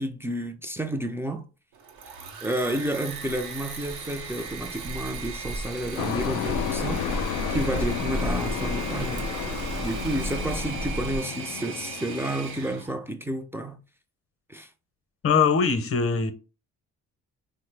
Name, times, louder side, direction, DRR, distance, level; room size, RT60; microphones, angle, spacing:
voice 1, 0.0-1.5 2.4-7.1 7.5-13.8 14.5-14.7, right 1 dB, 10° right, 0.3 m, -31 dB
Engine / Mechanisms, 1.7-12.9, right 6 dB, 90° right, 0.8 m, -39 dB
sound 1, 3.2-11.2, right 1 dB, 50° right, 0.7 m, -34 dB
Truck, 6.0-12.7, left 9 dB, 85° left, 0.5 m, -32 dB
voice 2, 15.2-16.3, left 5 dB, 50° left, 0.6 m, -21 dB
3.6 x 2.0 x 3.2 m
cardioid pair, 90°, 30 cm